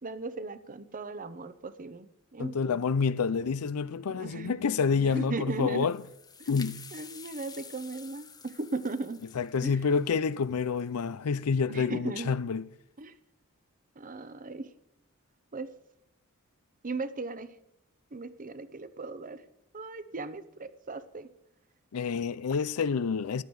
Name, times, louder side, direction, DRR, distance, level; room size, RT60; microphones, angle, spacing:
voice 1, 0.0-2.8 4.1-5.9 6.4-9.2 9.6-9.8 11.7-12.4 13.0-13.1 14.0-14.7 15.5-15.7 16.8-17.6 18.1-19.4 19.7-21.3, right 3 dB, 40° right, 0.8 m, -37 dB
voice 2, 2.4-6.0 6.5-6.9 9.4-12.6 21.9-23.4, left 5 dB, 75° left, 0.5 m, -28 dB
sound 1, 5.6-11.1, left 6 dB, 20° left, 0.7 m, -50 dB
14.0 x 11.5 x 4.8 m
head